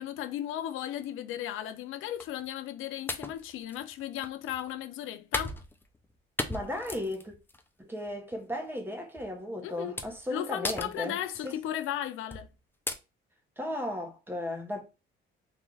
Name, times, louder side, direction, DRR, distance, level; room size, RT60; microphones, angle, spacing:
voice 1, 0.0-5.6 9.6-10.0 10.3-12.5, left 11 dB, 75° left, 0.5 m, -35 dB
sound 1, 2.2-2.5 3.1-4.6 5.3-6.1 6.4-7.6 8.1-8.3 9.2-9.3 10.0-10.3 10.6-11.6 12.3-12.5 12.9-13.0, left 2 dB, 10° left, 0.4 m, -36 dB
voice 2, 6.5-7.3 7.8-11.6 13.6-14.8, left 1 dB, 10° right, 0.8 m, -35 dB
3.7 x 2.3 x 3.1 m
cardioid pair, 145°, 21 cm